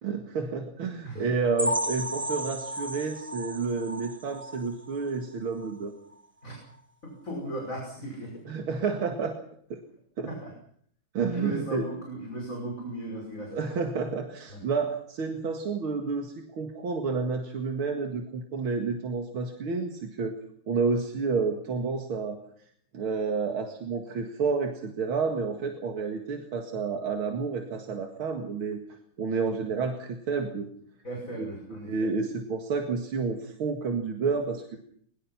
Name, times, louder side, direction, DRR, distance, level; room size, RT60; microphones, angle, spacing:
voice 1, 0.0-5.9 8.4-9.4 9.7-9.8 10.2-10.3 11.1-11.9 13.5-20.4 20.7-22.4 22.9-28.8 29.2-30.7 31.4-34.8, right 4 dB, 90° right, 4 dB, 2.8 m, -30 dB
sound 1, 1.6-5.2 5.6-5.8 6.1-6.2 6.7-6.8, equal, 10° right, 0.6 m, -33 dB
voice 2, 7.0-8.3 10.3-10.5 11.3-13.6 31.0-32.1, right 1 dB, 40° left, 0 dB, 6.1 m, -37 dB
23.0 x 22.0 x 5.8 m, 0.63 s
omnidirectional pair, 2.2 m